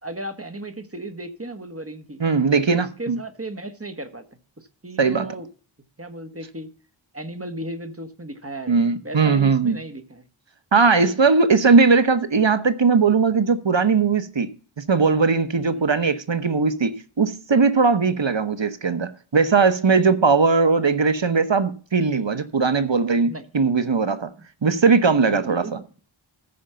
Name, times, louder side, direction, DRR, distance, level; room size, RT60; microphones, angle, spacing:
voice 1, 0.0-2.2 2.7-4.2 4.6-5.5 6.0-6.7 7.1-8.8 9.0-10.2 11.0-11.1 15.7-15.9 23.2-23.4 25.3-25.7, right 1 dB, 30° right, 1.4 m, -35 dB
voice 2, 2.2-3.2 5.0-5.2 8.7-9.8 10.7-14.5 14.9-24.3 24.6-25.8, right 4 dB, 65° right, 1.1 m, -19 dB
14.0 x 5.2 x 5.7 m
wide cardioid pair, 45°, 48 cm